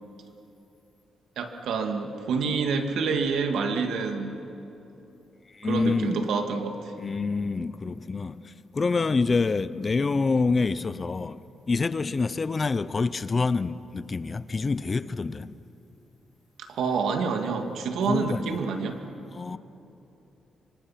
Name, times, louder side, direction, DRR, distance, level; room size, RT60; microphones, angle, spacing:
voice 1, 1.4-4.4 5.6-6.9 16.6-19.0, right 5 dB, 85° right, 2.1 m, -28 dB
voice 2, 5.5-6.3 7.0-15.5 18.1-18.6 19.3-19.6, left 4 dB, 30° left, 0.6 m, -27 dB
26.0 x 25.0 x 5.8 m
cardioid pair, 125°, 0 cm